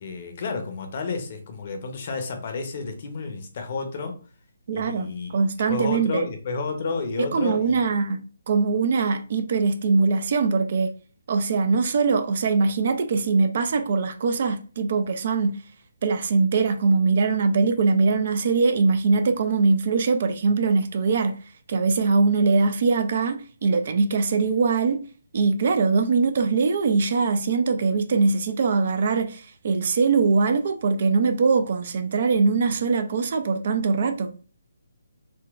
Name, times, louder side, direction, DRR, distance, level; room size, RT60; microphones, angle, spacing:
voice 1, 0.0-4.2 4.7-5.4 5.7-7.8, left 4 dB, 45° left, 0.7 m, -31 dB
voice 2, 4.7-6.3 7.2-10.9 11.3-15.5 16.0-21.4 21.7-25.0 25.3-34.3, right 4 dB, 50° right, 0.4 m, -22 dB
3.7 x 2.2 x 2.4 m
figure-of-eight pair, 150°, 0 cm